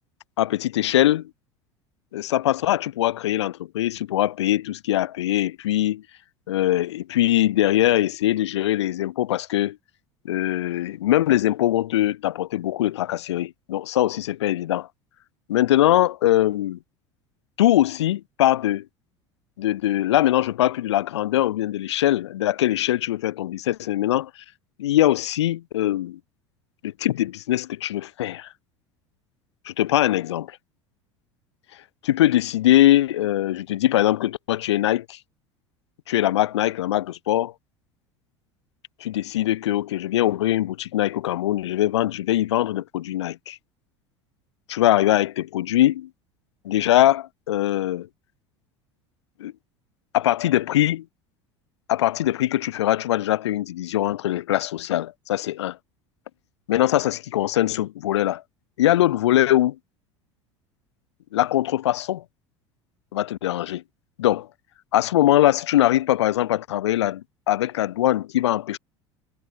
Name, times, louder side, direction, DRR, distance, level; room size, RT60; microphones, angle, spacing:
voice 1, 0.4-1.3 2.1-6.0 6.5-9.8 10.2-14.9 15.5-16.8 17.6-18.9 19.6-24.3 24.8-26.2 26.8-28.5 29.7-30.6 32.0-35.2 36.1-37.5 39.0-43.6 44.7-46.1 46.6-48.1 49.4-49.5 50.1-51.0 51.9-55.8 56.7-58.4 58.8-59.8 61.3-62.2 63.1-63.8 64.2-64.5 64.9-68.8, left 13 dB, 70° left, 0.4 m, -22 dB
figure-of-eight pair, 70°, 15 cm